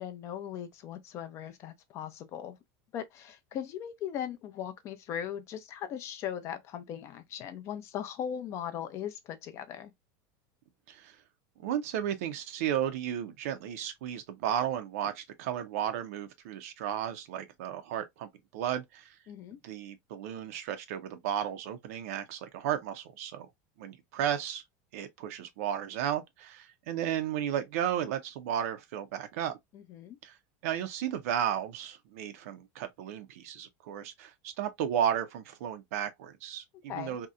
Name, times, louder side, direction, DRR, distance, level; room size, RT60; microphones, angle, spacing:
voice 1, 0.0-2.6 2.9-9.9 19.3-19.6 29.7-30.2 36.9-37.2, left 9 dB, 35° left, 0.5 m, -39 dB
voice 2, 11.6-19.1 19.6-23.5 23.8-24.6 24.9-29.6 30.2-30.4 30.6-37.3, right 10 dB, 75° right, 0.5 m, -34 dB
2.7 x 2.0 x 2.3 m
supercardioid pair, 155°, 8 cm